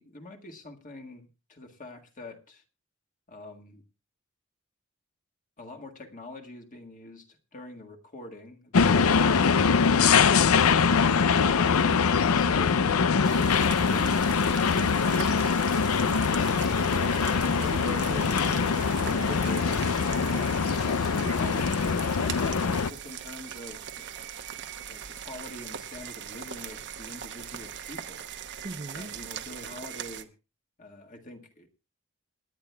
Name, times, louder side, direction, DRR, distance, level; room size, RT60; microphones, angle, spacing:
voice 1, 0.0-2.6 3.3-3.8 5.6-10.8 11.4-12.7 17.3-17.6 20.2-21.0 21.3-24.1 24.9-28.3 28.9-30.3 30.8-31.7, left 2 dB, 40° left, 1.8 m, -45 dB
sound 1, 8.7-22.9, left 5 dB, 80° left, 0.6 m, -23 dB
sound 2, 13.2-30.2, right 8 dB, 55° right, 1.0 m, -40 dB
voice 2, 16.9-20.4 21.2-21.7 28.6-29.1, right 2 dB, 30° right, 0.7 m, -39 dB
27.0 x 9.9 x 2.3 m
head